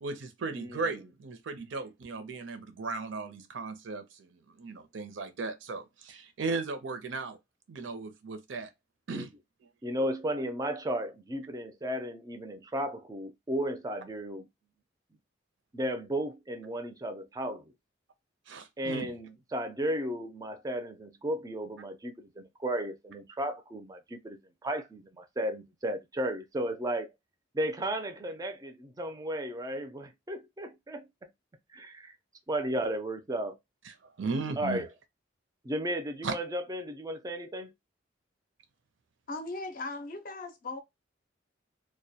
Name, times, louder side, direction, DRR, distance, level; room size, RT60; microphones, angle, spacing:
voice 1, 0.0-7.4 7.7-8.7 9.1-9.3 18.5-19.1 33.9-34.8 36.2-36.3, right 3 dB, 80° right, 0.5 m, -36 dB
voice 2, 0.5-1.0 9.1-9.3 9.8-14.5 15.7-17.7 18.8-27.1 27.5-31.3 31.7-32.1 32.5-33.6 34.6-34.9 35.6-37.7, right 1 dB, 20° right, 0.4 m, -34 dB
voice 3, 39.3-40.8, left 2 dB, 45° left, 0.5 m, -38 dB
2.2 x 2.1 x 2.7 m
head